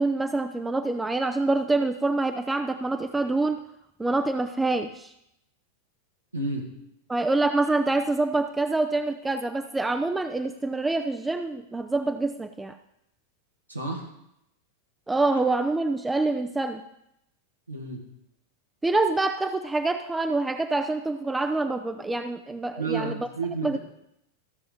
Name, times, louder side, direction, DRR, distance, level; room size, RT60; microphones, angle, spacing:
voice 1, 0.0-3.6 4.0-5.1 7.1-12.8 15.1-16.8 18.8-23.3 23.6-23.8, right 2 dB, 10° right, 7 dB, 0.5 m, -26 dB
voice 2, 6.3-6.7 13.7-14.0 17.7-18.0 22.8-23.8, right 3 dB, 85° right, -1 dB, 1.7 m, -31 dB
14.5 x 6.4 x 5.0 m, 0.81 s
figure-of-eight pair, 90°, 0 cm